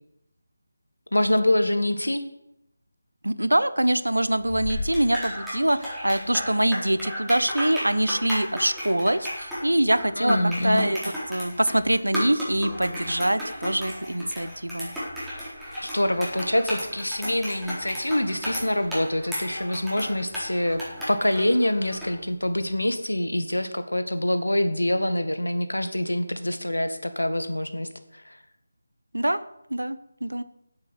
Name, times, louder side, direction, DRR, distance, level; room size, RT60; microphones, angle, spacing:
voice 1, 1.1-2.2 10.2-10.9 15.8-28.4, left 1 dB, 85° left, 9 dB, 1.8 m, -25 dB
voice 2, 3.2-10.4 10.6-11.0 11.3-14.9 29.1-29.4 29.7-30.4, right 1 dB, 85° right, 14 dB, 1.0 m, -24 dB
sound 1, 4.4-22.2, equal, 5° right, 4.2 m, -34 dB
9.7 x 8.4 x 8.2 m, 0.83 s
figure-of-eight pair, 160°, 0 cm